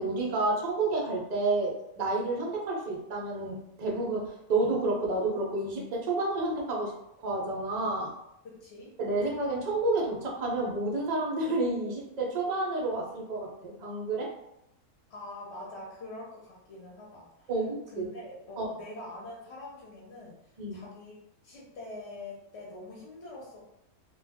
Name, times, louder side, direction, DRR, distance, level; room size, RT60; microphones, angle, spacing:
voice 1, 0.0-6.9 7.2-8.1 9.0-14.3 17.5-18.1 18.6-18.7 20.6-20.8, right 2 dB, 60° right, -3 dB, 0.4 m, -30 dB
voice 2, 8.4-8.9 15.1-17.5 17.9-21.2 21.4-23.7, left 2 dB, 55° left, -4 dB, 0.9 m, -44 dB
2.4 x 2.2 x 3.4 m, 0.80 s
omnidirectional pair, 1.6 m